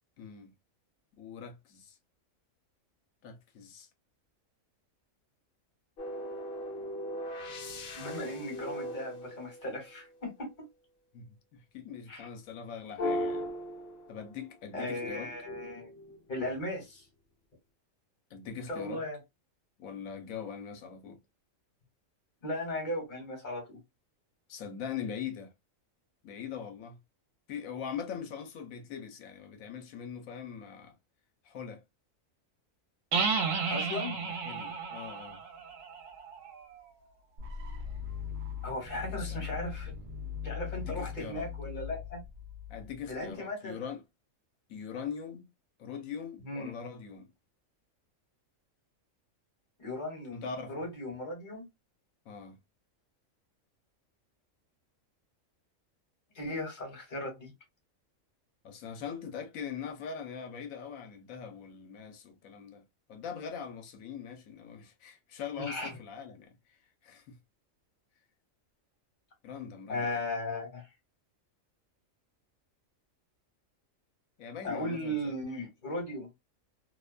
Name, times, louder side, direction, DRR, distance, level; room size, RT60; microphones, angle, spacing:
voice 1, 0.2-0.5 1.2-2.0 3.2-3.9 11.1-13.5 14.1-15.3 18.3-19.0 19.8-21.2 24.5-25.5 26.2-27.0 27.5-30.9 31.4-31.8 34.1-35.4 39.0-39.5 40.7-41.5 42.7-44.0 44.7-45.5 45.8-47.3 50.3-50.8 52.3-52.6 58.6-62.8 63.1-66.5 67.0-67.4 69.4-70.1 74.4-75.4, left 7 dB, 85° left, 1.1 m, -42 dB
ambienta-soundtrack memorymoon magicair-whawheel live, 6.0-10.1 13.0-14.5 15.0-16.8, left 1 dB, 55° left, 0.8 m, -38 dB
voice 2, 7.9-10.7 12.1-12.3 14.7-15.9 16.3-17.0 18.7-19.2 22.4-23.8 33.7-34.2 38.6-39.9 40.4-42.2 43.1-43.8 46.4-46.7 49.8-51.7 56.3-57.5 65.6-65.9 69.9-70.9 74.6-76.3, left 1 dB, 35° left, 1.3 m, -37 dB
sound 1, 33.1-36.8, right 5 dB, 70° right, 1.0 m, -33 dB
sound 2, 37.4-43.3, left 8 dB, 55° right, 0.6 m, -40 dB
2.6 x 2.1 x 2.3 m
omnidirectional pair, 1.4 m